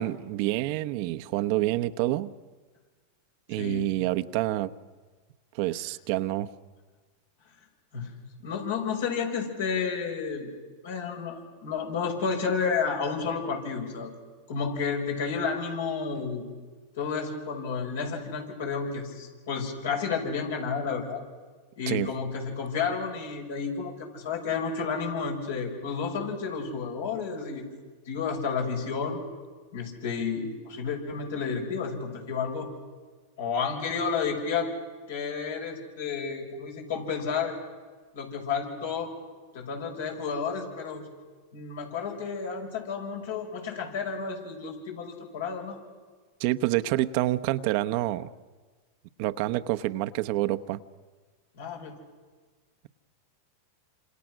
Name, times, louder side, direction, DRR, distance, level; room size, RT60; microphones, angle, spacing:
voice 1, 0.0-2.3 3.5-4.7 5.5-6.5 21.9-22.1 46.4-48.3 49.2-50.8, right 16 dB, 55° right, 12 dB, 0.9 m, -27 dB
voice 2, 3.6-3.9 7.9-8.1 8.4-10.5 10.8-14.1 14.5-16.4 17.0-21.2 21.8-27.6 28.1-29.3 29.7-32.7 33.4-34.7 35.1-37.6 38.1-39.1 39.5-41.1 41.5-45.8 51.6-52.0, left 5 dB, 75° left, 1 dB, 6.3 m, -31 dB
27.5 x 27.0 x 6.3 m, 1.4 s
hypercardioid pair, 110°, 0 cm